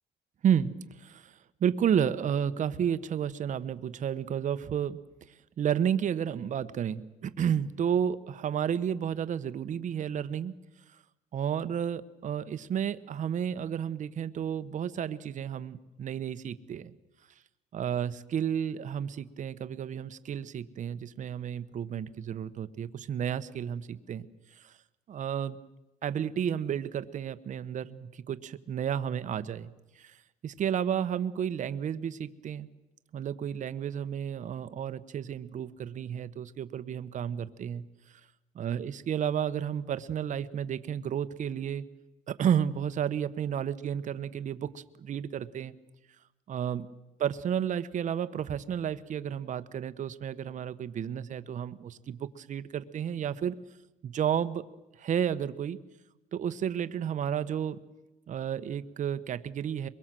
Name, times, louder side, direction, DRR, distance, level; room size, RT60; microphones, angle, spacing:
voice 1, 0.4-1.3 1.6-5.0 5.6-10.5 11.3-17.0 17.7-24.3 24.6-24.7 25.1-25.6 26.0-29.7 30.0-30.1 30.4-32.7 33.1-37.8 38.5-41.8 42.3-45.7 46.5-46.9 47.2-53.6 54.0-54.6 55.0-55.8 56.3-57.8 58.3-59.9, right 8 dB, 50° right, 13 dB, 1.0 m, -31 dB
23.5 x 22.5 x 7.6 m, 1.0 s
cardioid pair, 110°, 17 cm